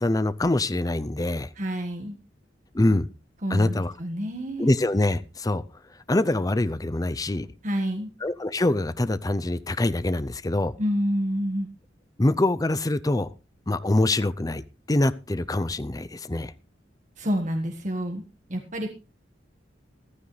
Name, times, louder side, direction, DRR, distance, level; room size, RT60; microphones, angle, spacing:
voice 1, 0.0-1.5 2.7-3.1 3.5-3.9 4.6-5.6 6.1-7.5 8.2-10.7 12.2-13.3 13.7-16.5, left 2 dB, 20° left, 15 dB, 0.6 m, -24 dB
voice 2, 1.6-2.2 3.4-4.7 7.6-8.1 10.8-11.7 17.2-18.2 18.5-18.9, equal, 45° right, 4 dB, 1.6 m, -28 dB
15.0 x 13.0 x 3.3 m, 0.30 s
head